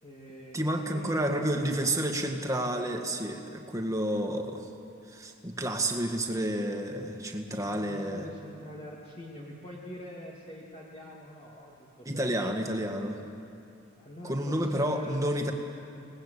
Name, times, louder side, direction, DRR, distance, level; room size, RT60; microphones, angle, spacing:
voice 1, 0.0-2.2 7.4-12.5 14.0-15.5, equal, 30° left, -4 dB, 2.5 m, -45 dB
voice 2, 0.5-4.7 5.1-8.3 12.1-13.2 14.2-15.5, right 1 dB, 15° right, 3 dB, 2.0 m, -30 dB
28.5 x 19.5 x 8.4 m, 2.6 s
head